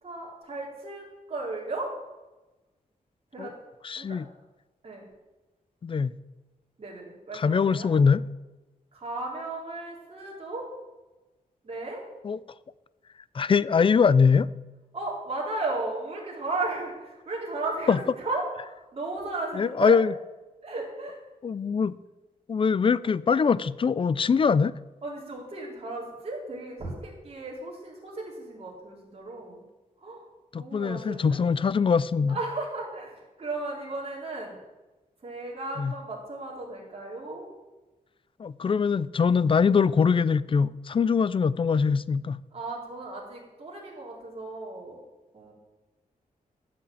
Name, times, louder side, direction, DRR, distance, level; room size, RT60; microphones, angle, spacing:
voice 1, 0.0-1.9 3.3-3.5 3.9-4.2 4.8-5.0 6.8-7.9 8.9-10.7 11.6-12.0 14.9-20.0 20.6-21.2 25.0-29.6 30.0-30.3 30.6-31.4 32.3-34.6 35.2-37.5 42.5-45.0 45.3-45.5, right 2 dB, 45° right, 3.4 m, -35 dB
voice 2, 3.8-4.3 5.8-6.1 7.3-8.2 12.2-12.4 13.3-14.5 17.9-18.0 19.6-20.1 21.4-22.0 22.5-24.7 30.5-32.4 35.8-35.9 38.4-42.4, left 5 dB, 35° left, 0.4 m, -22 dB
12.5 x 5.9 x 8.4 m
wide cardioid pair, 170°, 15 cm